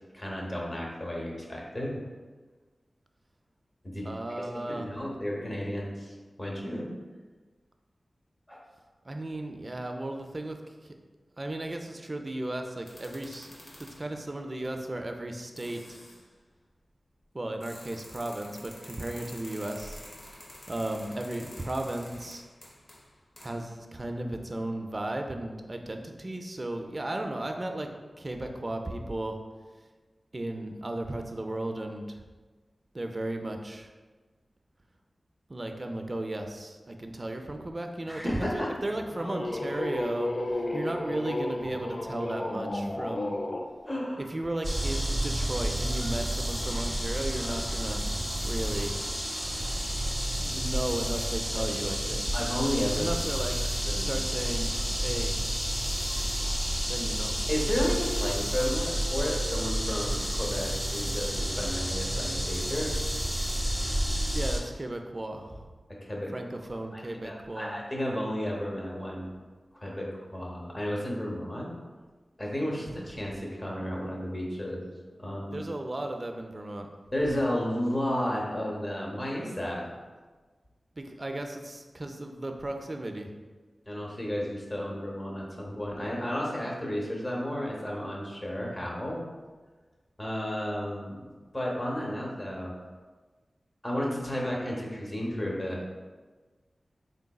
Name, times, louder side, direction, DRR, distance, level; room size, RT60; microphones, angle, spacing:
voice 1, 0.1-2.0 3.8-4.1 4.6-6.9 8.5-8.6 38.1-38.7 43.8-44.3 51.5-51.7 52.3-53.2 53.8-54.1 57.5-62.9 65.9-66.3 66.9-69.3 69.7-71.7 72.4-74.9 75.2-75.6 77.1-79.8 83.9-89.2 90.2-91.2 91.5-92.7 93.8-95.8, equal, 30° left, -3 dB, 0.9 m, -32 dB
voice 2, 4.0-4.9 9.1-10.9 11.4-13.5 14.0-16.0 17.3-20.0 20.7-22.4 23.4-27.9 28.2-29.4 30.3-32.0 32.9-33.9 35.5-43.4 44.3-48.0 48.4-49.0 50.4-52.3 52.9-53.6 53.9-54.7 55.0-55.4 56.9-57.4 64.3-65.6 66.3-67.8 72.8-73.1 75.5-76.9 81.0-83.3, right 1 dB, 35° right, 4 dB, 0.4 m, -35 dB
sound 1, 12.8-14.1 15.1-15.2 15.6-16.2 17.6-23.7, left 1 dB, 70° left, 0.8 m, -49 dB
sound 2, 38.8-43.7, left 1 dB, 50° left, 0.4 m, -33 dB
sound 3, 44.6-64.6, right 1 dB, 5° left, 0.7 m, -30 dB
3.8 x 3.7 x 2.3 m, 1.4 s
wide cardioid pair, 80°, 0 cm